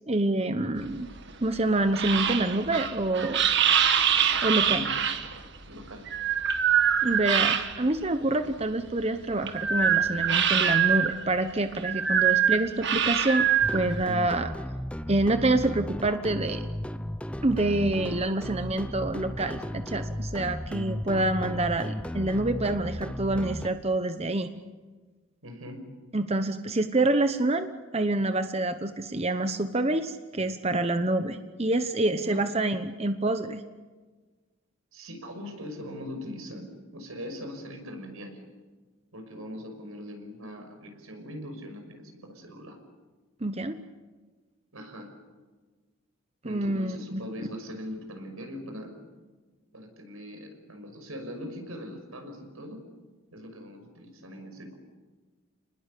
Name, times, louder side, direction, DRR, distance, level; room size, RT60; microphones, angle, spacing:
voice 1, 0.1-1.1 1.4-3.4 4.4-4.8 7.0-14.5 15.1-16.6 17.4-24.5 26.1-27.7 27.9-33.6 43.4-43.8 46.5-47.2, right 2 dB, 30° right, 9 dB, 1.0 m, -27 dB
sound 1, 0.8-8.0 8.4-14.2, right 8 dB, 55° right, 1.9 m, -25 dB
voice 2, 5.7-6.1 25.4-25.8 32.2-32.4 34.9-38.4 39.1-42.8 44.7-45.1 46.4-48.9 49.7-52.9 53.3-54.8, equal, 85° right, 5 dB, 6.0 m, -41 dB
sound 2, 13.6-23.7, equal, 5° left, 0.7 m, -35 dB
29.5 x 20.0 x 8.5 m, 1.3 s
head